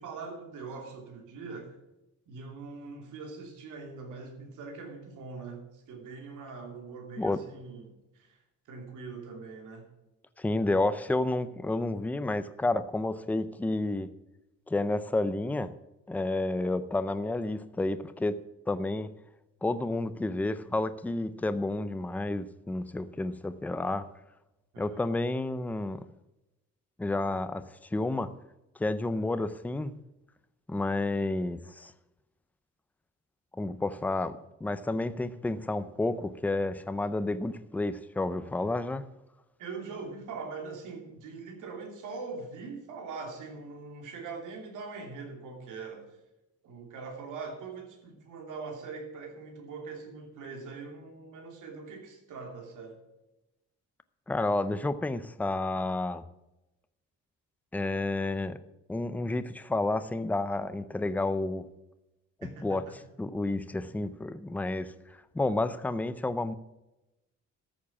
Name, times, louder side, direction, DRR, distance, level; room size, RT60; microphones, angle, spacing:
voice 1, 0.0-1.8 2.3-8.4 8.7-9.9 24.7-25.1 39.6-46.1 46.6-53.0 62.4-63.0, right 4 dB, 80° right, 3 dB, 2.9 m, -42 dB
voice 2, 10.4-14.1 14.7-15.7 16.1-18.3 18.7-19.1 19.6-24.1 24.8-26.0 27.0-27.6 27.9-28.3 28.8-29.9 30.7-31.9 33.5-39.1 54.3-56.2 57.7-58.6 58.9-61.7 62.6-62.8 63.2-66.5, left 2 dB, 5° left, 12 dB, 0.4 m, -30 dB
13.5 x 7.2 x 6.1 m, 0.96 s
cardioid pair, 165°, 30 cm